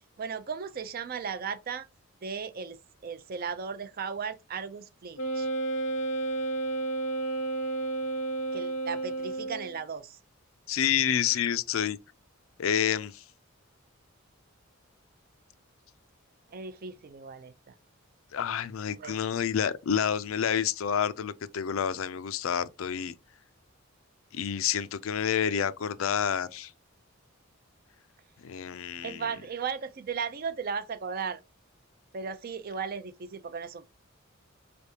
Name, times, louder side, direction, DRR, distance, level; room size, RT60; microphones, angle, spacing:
voice 1, 0.2-1.9 2.2-5.5 8.5-10.2 16.5-17.7 19.0-19.4 29.0-31.4 32.1-33.9, right 6 dB, 45° right, 0.4 m, -36 dB
Wind instrument woodwind instrument, 5.2-9.8, right 2 dB, 90° left, 0.8 m, -31 dB
voice 2, 10.7-12.0 12.6-13.2 18.3-23.1 24.3-26.7 28.4-29.2, left 8 dB, 70° left, 0.4 m, -29 dB
4.4 x 3.4 x 2.8 m
head